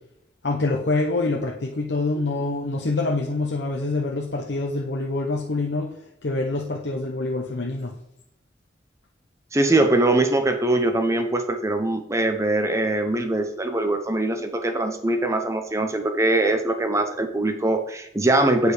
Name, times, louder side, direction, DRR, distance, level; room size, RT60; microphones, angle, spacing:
voice 1, 0.4-5.9 6.2-7.9, left 2 dB, 75° left, 0 dB, 0.8 m, -25 dB
voice 2, 9.5-18.7, right 2 dB, 15° right, 7 dB, 0.7 m, -22 dB
8.5 x 4.9 x 4.9 m, 0.77 s
head